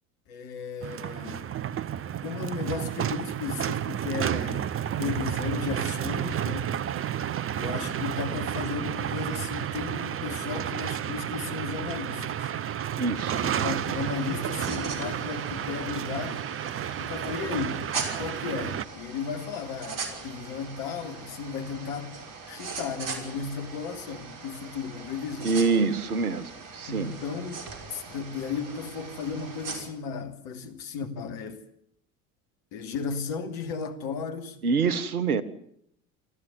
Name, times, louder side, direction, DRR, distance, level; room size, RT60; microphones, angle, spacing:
voice 1, 0.3-1.5 2.2-6.8 7.6-12.5 13.3-16.4 17.0-17.9 18.2-22.1 22.5-25.6 26.9-31.6 32.7-34.6, left 5 dB, 55° left, 3.0 m, -35 dB
sound 1, 0.8-18.8, right 10 dB, 30° right, 0.9 m, -31 dB
voice 2, 13.0-13.4 25.4-27.1 34.6-35.4, right 4 dB, 80° right, 1.4 m, -26 dB
sound 2, 13.1-29.8, right 4 dB, 45° right, 5.6 m, -40 dB
27.5 x 14.0 x 9.7 m
figure-of-eight pair, 65°, 43 cm